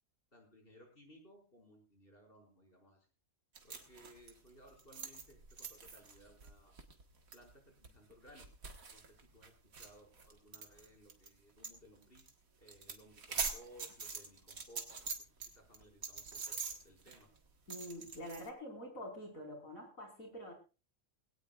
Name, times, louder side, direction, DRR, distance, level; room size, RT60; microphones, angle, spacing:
voice 1, 0.3-3.1 3.6-6.7 7.3-8.5 8.9-12.3 12.6-14.9 15.2-17.3, equal, 40° left, 1 dB, 5.7 m, -61 dB
sound 1, 3.5-11.3 11.6-11.8 12.0-12.3 12.6-15.5 15.7-18.5, right 5 dB, 85° right, 2.1 m, -44 dB
voice 2, 17.7-20.5, equal, 80° left, 2 dB, 5.4 m, -46 dB
20.5 x 17.5 x 2.5 m, 0.32 s
omnidirectional pair, 1.4 m